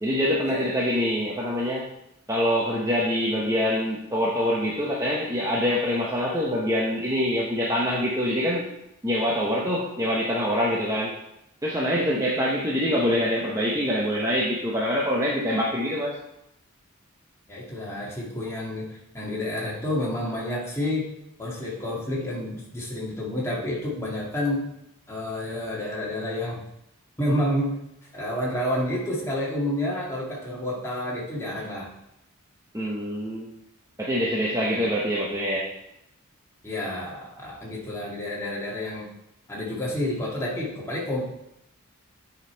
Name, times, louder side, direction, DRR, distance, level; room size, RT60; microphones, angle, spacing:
voice 1, 0.0-1.9 2.3-8.7 9.0-11.1 11.6-16.2 32.7-33.5 34.0-35.7, equal, 15° right, -4 dB, 0.9 m, -25 dB
voice 2, 17.5-21.1 21.4-24.7 25.1-26.6 27.2-27.8 28.1-31.9 34.5-34.9 36.6-39.1 39.5-41.2, left 1 dB, 10° left, -5 dB, 2.0 m, -29 dB
8.9 x 5.2 x 4.5 m, 0.83 s
head